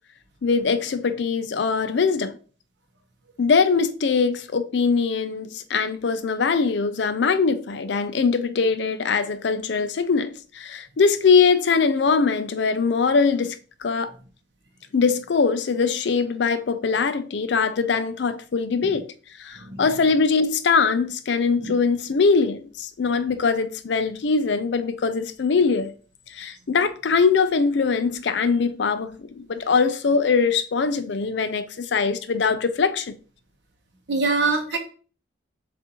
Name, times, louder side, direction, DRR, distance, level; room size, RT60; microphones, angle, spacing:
voice 1, 0.4-2.4 3.4-14.1 14.9-19.1 19.4-25.9 26.3-33.1, left 5 dB, 60° left, 0.4 m, -22 dB
voice 2, 34.1-34.8, right 3 dB, 65° right, 1.0 m, -23 dB
7.0 x 2.5 x 2.9 m
head